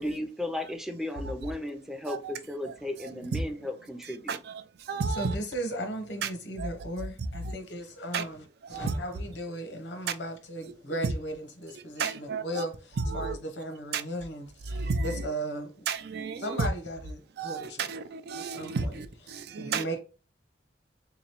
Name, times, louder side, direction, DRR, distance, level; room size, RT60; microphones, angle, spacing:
voice 1, 0.0-4.4, left 1 dB, ahead, 0.4 m, -35 dB
voice 2, 2.6-3.4 4.0-5.4 6.2-6.3 6.6-6.7 7.2-7.5 8.1-8.3 8.6-9.0 10.1-10.2 10.6-11.1 11.7-12.6 13.0-13.4 13.9-14.0 14.7-15.3 15.9-16.7 17.4-19.9, right 4 dB, 65° right, 0.4 m, -33 dB
voice 3, 5.1-8.4 8.7-15.9 16.4-17.9 18.3-18.9 19.3-20.0, right 1 dB, 85° left, 0.8 m, -36 dB
3.5 x 2.9 x 2.9 m
head